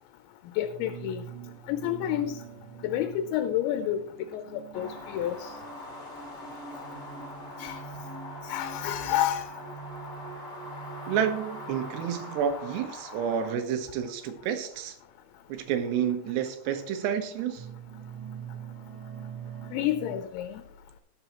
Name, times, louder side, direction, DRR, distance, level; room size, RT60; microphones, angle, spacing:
voice 1, 0.6-1.3 1.7-2.4 2.8-4.0 4.3-5.5 7.6-7.8 8.4-9.5 19.7-20.6, left 12 dB, 85° left, 2.9 m, -29 dB
sound 1, 0.6-12.8 13.7-14.0 15.1-15.2 15.8-16.0 16.7-20.2, right 6 dB, 60° right, 1.5 m, -44 dB
sound 2, 4.7-13.5, left 2 dB, 25° left, 2.9 m, -43 dB
voice 2, 11.1-15.0 15.5-17.7, right 8 dB, 75° right, 3.0 m, -30 dB
20.0 x 6.8 x 3.0 m
omnidirectional pair, 5.1 m